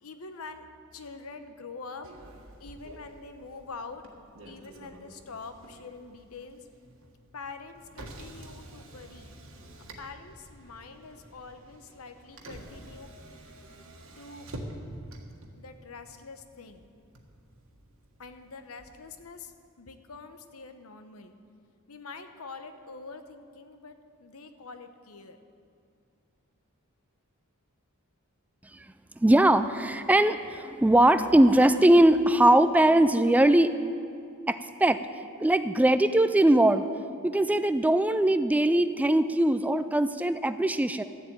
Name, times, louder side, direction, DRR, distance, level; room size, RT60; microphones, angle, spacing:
voice 1, 0.0-2.1 2.6-4.0 4.4-6.7 7.3-9.3 9.8-13.5 14.2-14.5 15.5-16.9 18.2-21.3 21.9-25.4, left 4 dB, 80° left, 8 dB, 0.9 m, -45 dB
Motor vehicle (road), 2.0-19.2, right 1 dB, 70° right, 1.5 m, -48 dB
voice 2, 29.2-33.7 34.5-35.0 35.4-36.9 37.2-41.0, right 1 dB, 5° right, 11 dB, 0.3 m, -21 dB
13.0 x 7.6 x 8.6 m, 2.4 s
head